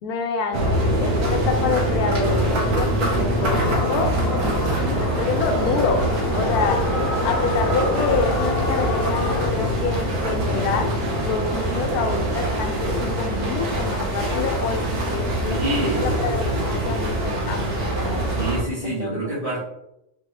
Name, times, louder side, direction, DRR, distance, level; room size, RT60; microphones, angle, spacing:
voice 1, 0.0-4.1 4.9-6.0 6.3-6.9 7.2-10.9 11.2-18.3 18.8-19.3, left 4 dB, 90° left, 4 dB, 1.1 m, -27 dB
sound 1, 0.5-18.6, right 1 dB, 85° right, 1.4 m, -24 dB
sound 2, 3.4-9.5, left 3 dB, 55° left, 0.7 m, -28 dB
voice 2, 15.4-16.1 18.3-19.6, right 2 dB, 25° right, -11 dB, 1.5 m, -27 dB
4.2 x 3.5 x 3.3 m, 0.85 s
omnidirectional pair, 1.6 m